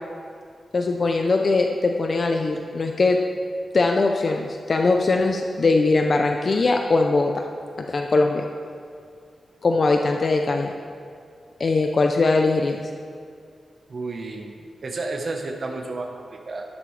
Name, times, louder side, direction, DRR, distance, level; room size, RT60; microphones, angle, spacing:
voice 1, 0.7-3.2 3.7-7.4 7.8-8.4 9.6-10.7 11.6-12.8, left 3 dB, 40° left, 3 dB, 0.5 m, -21 dB
voice 2, 13.9-14.5 14.8-16.6, right 3 dB, 45° right, 2 dB, 1.1 m, -31 dB
12.0 x 11.0 x 3.3 m, 2.3 s
wide cardioid pair, 150°, 0 cm